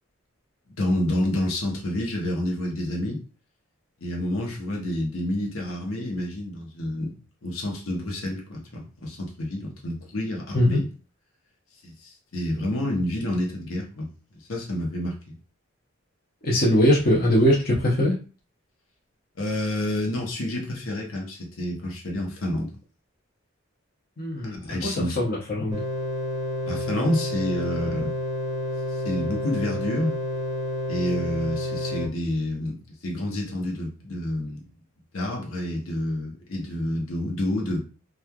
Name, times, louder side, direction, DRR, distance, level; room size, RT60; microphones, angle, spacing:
voice 1, 0.8-3.2 4.0-7.1 7.4-10.8 11.8-15.4 19.4-22.7 24.6-25.2 26.7-28.1 28.9-30.2 30.9-34.6 35.1-37.8, left 1 dB, 75° left, 0 dB, 0.8 m, -29 dB
voice 2, 16.4-18.2 24.2-25.8, equal, 45° left, -3 dB, 0.7 m, -21 dB
sound 1, 25.7-32.1, left 1 dB, 15° right, 0.5 m, -29 dB
3.1 x 2.3 x 2.2 m, 0.35 s
head